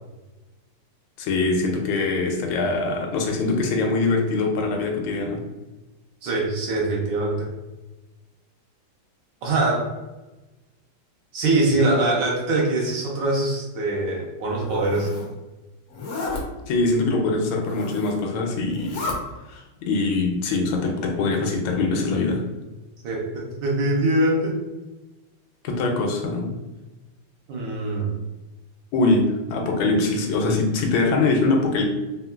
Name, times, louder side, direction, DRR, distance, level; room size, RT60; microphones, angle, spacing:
voice 1, 1.2-5.4 16.7-19.2 19.5-22.4 25.6-26.6 28.9-31.8, left 3 dB, 85° left, 2 dB, 1.4 m, -23 dB
voice 2, 6.2-7.5 9.4-9.9 11.3-15.1 23.0-24.6 27.5-28.1, right 2 dB, 70° right, -3 dB, 1.3 m, -23 dB
Zipper (clothing), 14.5-15.3 15.9-16.4 17.5-18.2 18.6-19.2, left 3 dB, 70° left, 0.9 m, -32 dB
3.6 x 2.2 x 2.2 m, 1.1 s
omnidirectional pair, 2.2 m